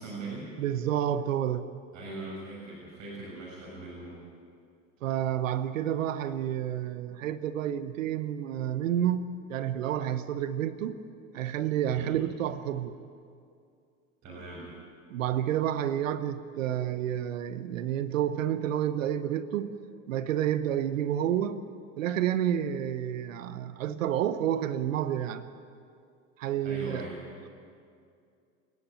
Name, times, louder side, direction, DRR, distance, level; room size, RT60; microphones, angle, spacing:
voice 1, 0.0-0.6 1.9-4.2 11.9-12.1 14.2-14.7 26.6-27.3, right 2 dB, 50° right, -6 dB, 7.0 m, -40 dB
voice 2, 0.6-1.7 5.0-11.0 11.3-13.0 15.1-19.7 20.1-21.6 22.0-25.4 26.4-27.1, right 10 dB, 85° right, 14 dB, 0.9 m, -29 dB
27.5 x 10.5 x 9.5 m, 2.4 s
hypercardioid pair, 85°, 38 cm